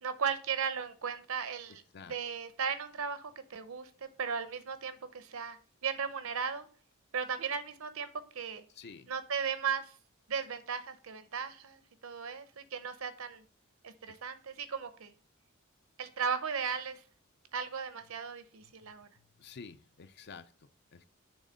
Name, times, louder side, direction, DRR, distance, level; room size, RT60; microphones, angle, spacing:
voice 1, 0.0-1.8 2.1-3.9 4.2-5.6 5.8-6.7 7.1-8.6 9.1-9.9 10.3-13.4 13.8-15.1 16.0-17.0 17.5-19.1, right 6 dB, 80° right, 11 dB, 0.8 m, -36 dB
voice 2, 8.7-9.1 14.1-14.2 18.8-21.1, left 5 dB, 55° left, 12 dB, 0.5 m, -51 dB
6.3 x 3.6 x 5.1 m, 0.41 s
head